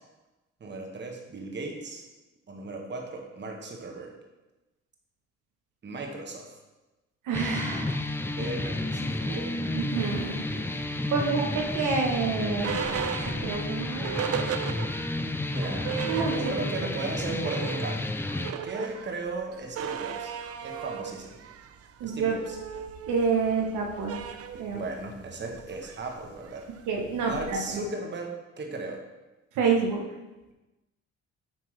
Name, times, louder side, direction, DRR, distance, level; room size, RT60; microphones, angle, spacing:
voice 1, 0.6-2.0 2.5-4.1 5.8-6.6 8.3-9.6 11.1-11.4 15.5-15.9 16.4-18.0 18.6-20.3 20.6-21.4 22.0-22.6 24.7-26.6 27.2-29.0, right 3 dB, 35° right, 1 dB, 1.1 m, -36 dB
voice 2, 7.2-8.1 9.0-9.3 9.7-10.4 11.1-12.8 13.4-14.3 16.0-16.4 22.0-22.3 23.1-24.2 24.5-24.8 26.9-27.8 29.5-30.0, right 5 dB, 85° right, 1 dB, 1.0 m, -28 dB
sound 1, 7.3-18.5, left 2 dB, 10° left, 0.3 m, -31 dB
sound 2, 11.6-15.3 15.6-15.7 15.8-16.9 17.2-27.7, right 7 dB, 55° right, 0.5 m, -36 dB
7.4 x 4.5 x 3.2 m, 1.1 s
cardioid pair, 90°, 30 cm